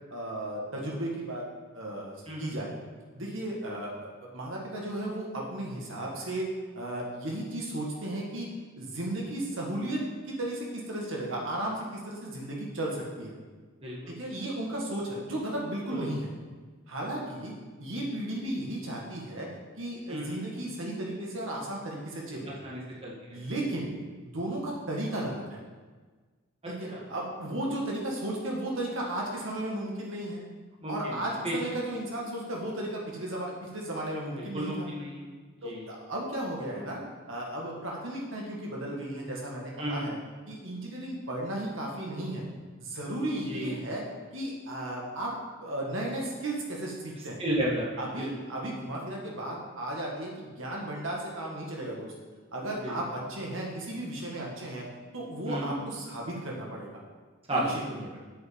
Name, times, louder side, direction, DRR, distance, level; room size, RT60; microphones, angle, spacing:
voice 1, 0.1-1.4 1.7-2.7 3.1-6.5 6.7-8.5 8.8-13.3 14.1-16.3 16.9-17.5 17.8-19.5 19.8-22.5 23.3-23.9 24.2-25.6 26.7-30.4 30.9-34.9 35.6-37.0 37.3-40.2 40.5-42.5 42.8-44.0 44.3-45.3 45.6-47.4 48.0-52.1 52.5-54.8 55.1-57.0 57.5-58.1, right 1 dB, 65° right, -2 dB, 1.9 m, -35 dB
voice 2, 22.6-23.1 26.9-27.0 30.8-31.2 31.4-31.5 34.4-35.2 35.6-35.9 39.8-40.1 43.5-43.7 47.4-47.8 48.2-48.3 52.8-53.0 55.5-55.8 57.5-57.6, right 1 dB, 30° right, -5 dB, 1.7 m, -32 dB
7.9 x 5.5 x 7.2 m, 1.4 s
head